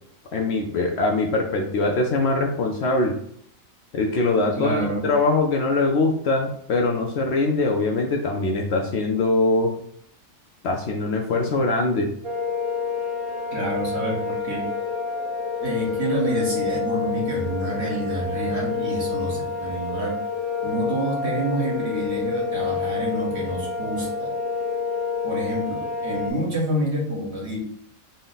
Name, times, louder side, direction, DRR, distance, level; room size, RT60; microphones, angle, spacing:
voice 1, 0.3-3.2 3.9-9.8 10.6-12.1, left 2 dB, 65° left, 2 dB, 0.7 m, -22 dB
voice 2, 4.5-5.0 13.5-14.7 15.6-20.2 20.6-24.3 25.2-27.6, right 1 dB, 55° right, -4 dB, 1.4 m, -28 dB
sound 1, 12.2-26.3, left 5 dB, 30° right, 0.8 m, -28 dB
4.1 x 2.1 x 3.9 m, 0.66 s
omnidirectional pair, 1.4 m